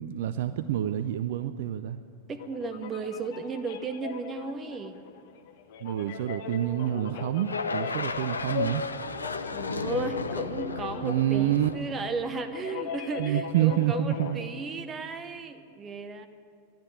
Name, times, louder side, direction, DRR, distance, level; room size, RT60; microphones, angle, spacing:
voice 1, 0.0-2.0 5.8-8.8 11.0-11.7 13.2-14.4, right 12 dB, 55° right, 11 dB, 0.4 m, -27 dB
sound 1, 2.3-14.4, left 7 dB, 50° left, 1.0 m, -38 dB
voice 2, 2.3-5.0 9.5-16.3, right 4 dB, 25° right, 9 dB, 0.9 m, -35 dB
sound 2, 7.4-12.8, left 4 dB, 75° left, 0.5 m, -35 dB
12.0 x 10.5 x 9.5 m, 2.3 s
figure-of-eight pair, 90°, 0 cm